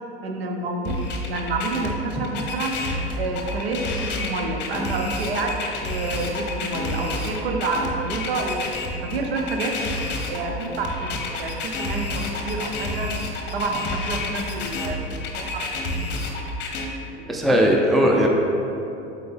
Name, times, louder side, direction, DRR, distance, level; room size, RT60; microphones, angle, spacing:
voice 1, 0.2-2.8 3.2-8.7 9.0-9.7 10.3-13.2 13.5-15.0 15.4-16.1 17.1-17.6 17.9-18.2, right 3 dB, 65° right, 2 dB, 0.9 m, -29 dB
sound 1, 0.8-16.8, left 2 dB, 30° left, 0.9 m, -29 dB
voice 2, 17.3-18.3, equal, ahead, 0 dB, 0.5 m, -18 dB
7.8 x 5.1 x 3.4 m, 3.0 s
figure-of-eight pair, 80°, 33 cm